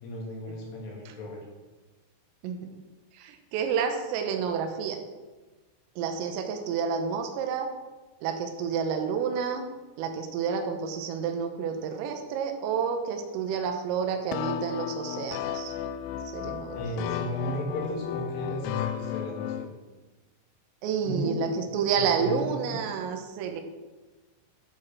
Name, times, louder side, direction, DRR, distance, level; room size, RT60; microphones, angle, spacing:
voice 1, 0.0-1.4 16.7-19.7 21.1-21.7 22.2-22.8, equal, 70° left, -3 dB, 5.8 m, -34 dB
voice 2, 3.1-5.0 6.0-7.7 8.2-9.6 10.0-15.7 16.3-17.1 20.8-23.6, right 6 dB, 90° right, 4 dB, 3.9 m, -30 dB
sound 1, 14.3-19.7, left 10 dB, 90° left, 3.3 m, -34 dB
13.5 x 7.6 x 6.2 m, 1.2 s
omnidirectional pair, 5.8 m